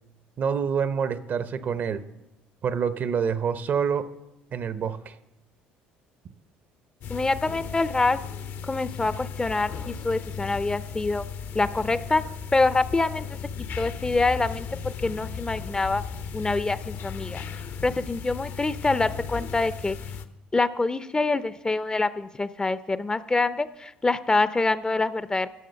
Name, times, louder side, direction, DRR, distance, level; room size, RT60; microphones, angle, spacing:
voice 1, 0.4-2.0 2.6-4.0 4.5-5.2, right 7 dB, 50° right, 13 dB, 0.6 m, -27 dB
sound 1, 7.0-20.2, left 6 dB, 60° left, 0.7 m, -36 dB
voice 2, 7.1-8.2 8.6-11.3 11.5-12.2 12.5-16.0 16.3-20.0 20.5-25.5, left 3 dB, 20° left, 14 dB, 0.5 m, -26 dB
11.0 x 6.2 x 6.8 m, 0.94 s
supercardioid pair, 80°, 4 cm